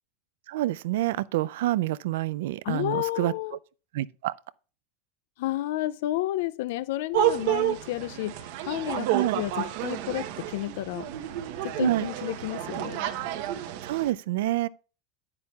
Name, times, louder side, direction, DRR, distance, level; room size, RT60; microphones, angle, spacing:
voice 1, 0.5-3.3 3.9-4.3 9.1-9.4 11.8-12.1 13.8-14.7, right 15 dB, 80° right, 0.3 m, -27 dB
voice 2, 2.6-3.6 5.4-11.1 11.6-13.1, left 15 dB, 70° left, 0.3 m, -31 dB
sound 1, 7.1-14.1, right 12 dB, 60° right, 0.9 m, -30 dB
9.8 x 9.5 x 2.3 m
supercardioid pair, 165°, 0 cm